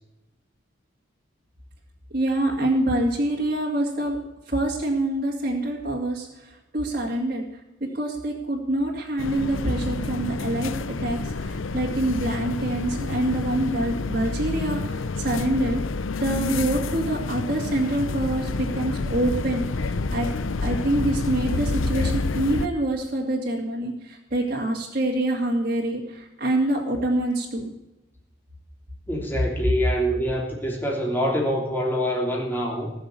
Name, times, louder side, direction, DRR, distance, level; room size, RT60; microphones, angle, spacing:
voice 1, 2.1-4.2 4.5-10.7 11.0-15.8 16.2-20.3 20.6-27.7, right 1 dB, 45° right, -4 dB, 2.4 m, -26 dB
sound 1, 9.2-22.7, left 3 dB, 80° left, 0.7 m, -29 dB
voice 2, 29.1-32.9, equal, 10° left, -2 dB, 3.1 m, -25 dB
19.0 x 6.7 x 8.5 m, 0.97 s
head